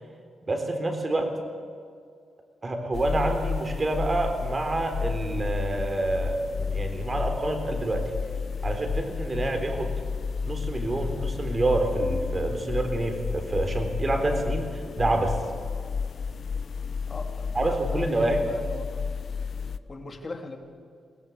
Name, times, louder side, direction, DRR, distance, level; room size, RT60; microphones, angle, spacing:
voice 1, 0.5-1.3 2.6-8.1 8.6-9.9 10.5-15.3 17.6-18.4, right 2 dB, 30° right, 5 dB, 3.8 m, -27 dB
sound 1, 2.9-19.8, left 5 dB, 55° left, 0.9 m, -32 dB
voice 2, 17.1-19.0 19.9-20.6, left 2 dB, 30° left, 4 dB, 2.8 m, -40 dB
22.5 x 17.0 x 8.4 m, 2.2 s
cardioid pair, 105°, 0 cm